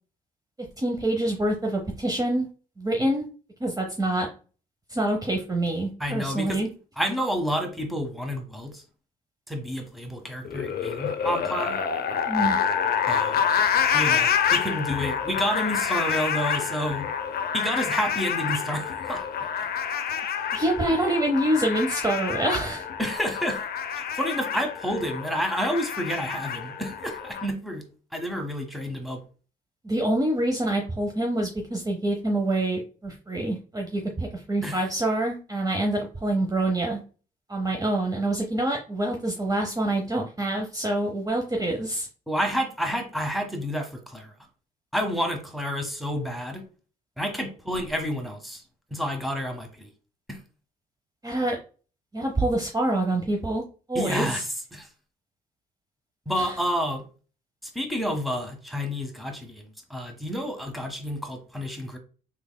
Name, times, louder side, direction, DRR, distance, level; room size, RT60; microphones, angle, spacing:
voice 1, 0.8-2.5 2.8-3.2 3.6-4.3 4.9-6.7 12.3-12.6 20.5-22.8 29.8-37.0 37.5-42.1 51.2-51.6 52.1-53.6 53.9-54.4 56.4-56.5, right 1 dB, 20° right, 1 dB, 0.7 m, -26 dB
voice 2, 6.0-6.6 7.0-8.8 9.5-11.8 13.1-13.4 13.9-17.1 17.5-19.2 23.0-23.6 24.0-27.8 28.1-29.2 34.6-34.8 42.3-44.3 44.9-46.6 47.2-48.6 48.9-49.9 50.3-50.4 53.9-54.9 56.3-57.0 57.6-62.0, equal, ahead, 4 dB, 1.0 m, -29 dB
sound 1, 10.4-27.5, left 7 dB, 50° left, 0.5 m, -27 dB
3.4 x 3.3 x 2.2 m, 0.37 s
hypercardioid pair, 50°, 20 cm